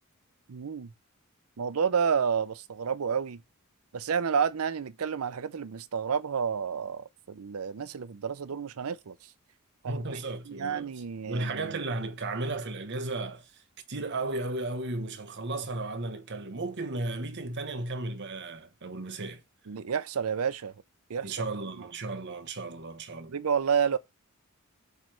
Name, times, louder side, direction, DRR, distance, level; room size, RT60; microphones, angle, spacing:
voice 1, 0.5-0.9 1.6-3.4 3.9-9.2 9.8-10.2 10.5-11.7 19.7-20.7 21.1-21.4 23.3-24.0, right 6 dB, 75° right, 0.5 m, -30 dB
voice 2, 9.9-10.9 11.3-13.6 13.9-19.4 21.2-23.4, right 2 dB, 55° right, 1.0 m, -34 dB
8.1 x 3.2 x 6.0 m
head